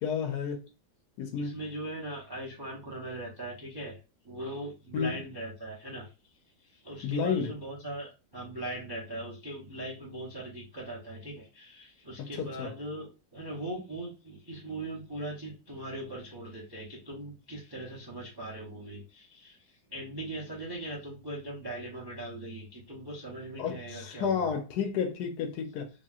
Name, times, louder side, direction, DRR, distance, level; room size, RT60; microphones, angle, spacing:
voice 1, 0.0-0.7 1.2-1.6 4.9-5.2 7.0-7.5 12.2-12.7 23.6-25.9, left 7 dB, 75° left, 1.1 m, -31 dB
voice 2, 1.4-4.0 4.2-6.1 6.6-24.5, right 1 dB, 40° right, 0.3 m, -40 dB
2.9 x 2.8 x 2.3 m
omnidirectional pair, 1.8 m